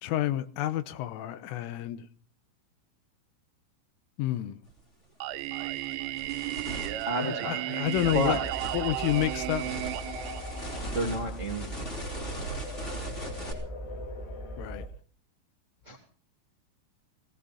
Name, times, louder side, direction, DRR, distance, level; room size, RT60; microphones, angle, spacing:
voice 1, 0.0-2.0 4.2-4.6 7.3-8.4 8.7-9.9 14.6-14.8, left 13 dB, 85° left, 3.4 m, -30 dB
sound 1, 4.7-4.8 5.3-13.5, right 2 dB, 20° left, 2.4 m, -40 dB
Singing, 5.2-11.2, right 15 dB, 80° right, 3.4 m, -34 dB
voice 2, 7.0-7.7 8.1-8.4 10.9-11.8 15.8-16.0, right 1 dB, 60° right, 0.7 m, -30 dB
sound 2, 7.9-14.9, equal, 55° left, 4.7 m, -40 dB
18.0 x 18.0 x 4.2 m
omnidirectional pair, 5.8 m